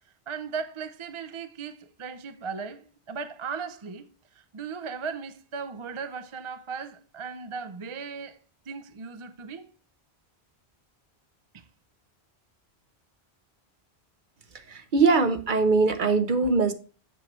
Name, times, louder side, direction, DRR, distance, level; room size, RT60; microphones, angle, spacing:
voice 1, 0.3-4.1 4.3-8.4 8.7-9.6 11.5-11.7, right 5 dB, 35° right, 0.5 m, -37 dB
voice 2, 14.7-16.7, right 4 dB, 55° right, 0.9 m, -22 dB
7.7 x 6.4 x 3.0 m
omnidirectional pair, 1.1 m